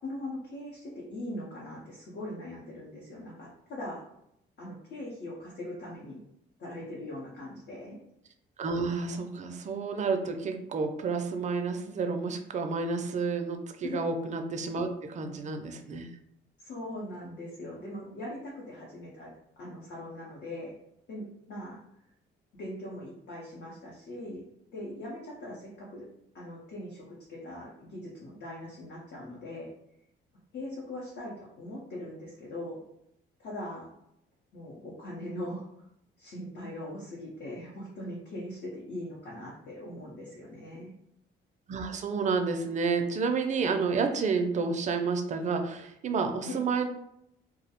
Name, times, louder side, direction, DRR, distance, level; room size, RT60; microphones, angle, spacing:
voice 1, 0.0-4.0 4.6-6.2 6.6-8.0 13.8-14.0 16.6-20.7 21.1-21.8 22.6-24.4 24.7-26.1 26.3-27.0 27.3-29.7 30.5-32.8 33.4-33.9 34.5-35.7 36.2-40.9 46.4-46.6, left 1 dB, 60° left, -5 dB, 0.7 m, -40 dB
voice 2, 8.6-16.1 41.7-46.9, right 4 dB, 35° right, 5 dB, 0.4 m, -30 dB
2.3 x 2.0 x 2.8 m, 0.77 s
cardioid pair, 90°, 20 cm